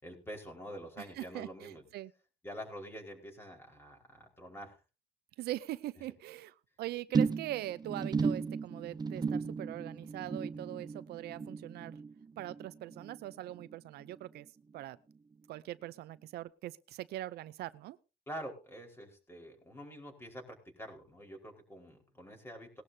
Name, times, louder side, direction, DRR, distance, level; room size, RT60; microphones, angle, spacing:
voice 1, 0.0-1.8 2.4-4.8 18.3-22.8, equal, 15° left, 2 dB, 4.8 m, -46 dB
voice 2, 1.2-2.1 5.4-12.0 12.4-14.5 14.7-15.0 15.5-18.0, right 15 dB, 75° right, 15 dB, 0.6 m, -42 dB
sound 1, 7.1-13.7 14.0-14.4 14.7-14.8, right 5 dB, 25° right, 0.8 m, -35 dB
19.5 x 12.0 x 2.8 m, 0.32 s
cardioid pair, 110°, 17 cm